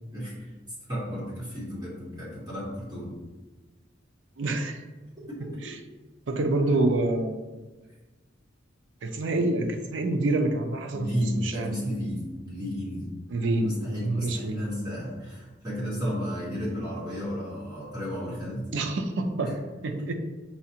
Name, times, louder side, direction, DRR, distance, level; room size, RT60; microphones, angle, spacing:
voice 1, 0.1-0.5 0.9-3.1 5.3-5.5 10.9-13.1 13.5-18.7, equal, 25° right, -8 dB, 1.3 m, -33 dB
voice 2, 4.4-4.8 5.6-5.7 6.3-7.4 9.0-11.1 11.4-11.7 13.3-13.7 14.0-14.6 18.7-19.5 19.8-20.1, right 2 dB, 85° right, 5 dB, 0.5 m, -26 dB
5.5 x 2.4 x 2.8 m, 1.2 s
head